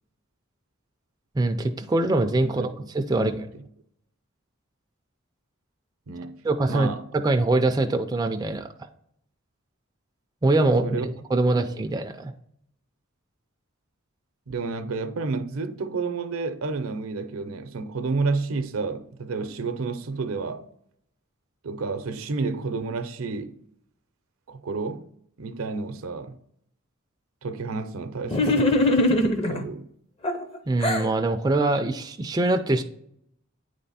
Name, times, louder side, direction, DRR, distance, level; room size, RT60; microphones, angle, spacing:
voice 1, 1.4-3.3 6.4-8.7 10.4-12.3 30.7-32.8, right 2 dB, 20° right, 0.3 m, -23 dB
voice 2, 3.1-3.6 6.1-6.4 6.7-7.0 10.8-11.0 11.4-11.9 14.5-20.6 21.6-23.5 24.5-25.0 25.4-26.3 27.4-28.9 29.5-29.9, right 4 dB, 80° right, 0.6 m, -30 dB
sound 1, 28.3-29.6 30.2-31.1, left 1 dB, 25° left, 0.6 m, -22 dB
9.1 x 3.3 x 4.1 m
head